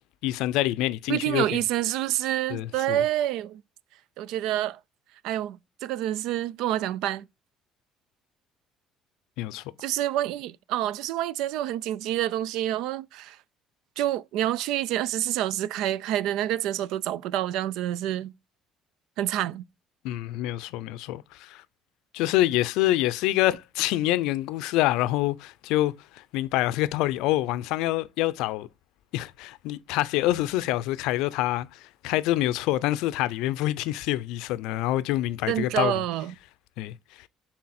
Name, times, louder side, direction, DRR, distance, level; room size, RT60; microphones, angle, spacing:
voice 1, 0.2-1.4 2.5-3.0 9.4-9.6 20.0-21.6 22.1-28.7 29.1-35.9 36.8-36.9, left 15 dB, 90° left, 0.4 m, -26 dB
voice 2, 1.1-3.6 4.2-4.8 5.2-7.3 9.8-13.4 14.0-18.3 19.2-19.6 35.5-36.3, right 13 dB, 80° right, 0.3 m, -28 dB
6.3 x 3.8 x 4.2 m
cardioid pair, 100°, 0 cm